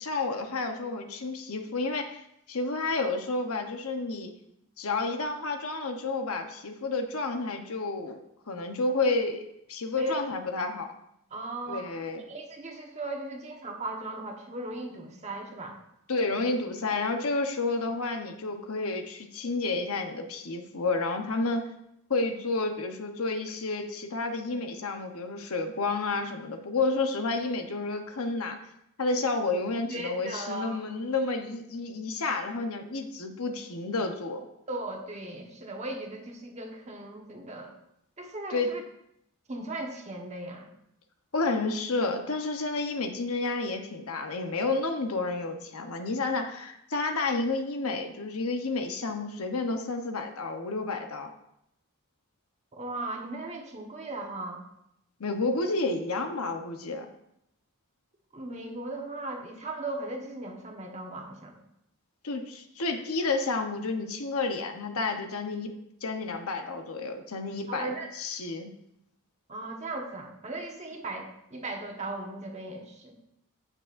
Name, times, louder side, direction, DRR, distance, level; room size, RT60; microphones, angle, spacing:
voice 1, 0.0-2.2 2.5-4.3 4.8-8.2 8.5-9.4 9.7-10.9 11.7-12.2 16.1-21.7 22.1-28.6 29.0-34.4 38.5-38.8 41.3-51.3 55.2-57.1 62.2-65.7 66.0-68.7, left 3 dB, 75° left, 5 dB, 1.0 m, -30 dB
voice 2, 11.3-11.9 12.2-15.8 29.9-30.8 34.7-37.7 38.2-38.8 39.5-40.7 52.7-54.6 58.3-61.6 67.7-68.1 69.5-71.2 71.5-73.1, right 2 dB, 30° right, 1 dB, 1.2 m, -37 dB
15.5 x 6.3 x 2.6 m, 0.79 s
head